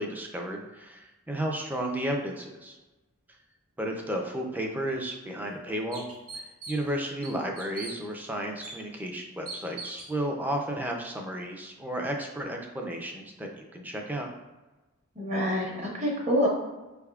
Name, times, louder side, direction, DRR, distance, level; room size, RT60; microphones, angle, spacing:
voice 1, 0.0-2.8 3.8-6.0 6.3-14.3, right 1 dB, 10° right, 1 dB, 0.4 m, -33 dB
sound 1, 4.9-5.0 5.5-5.6 5.9-6.9 7.2-7.9 8.6-8.7 9.5-10.1, right 3 dB, 85° right, 1.2 m, -40 dB
voice 2, 15.2-16.5, equal, 35° right, -2 dB, 0.9 m, -26 dB
5.4 x 3.4 x 2.3 m, 1.1 s
head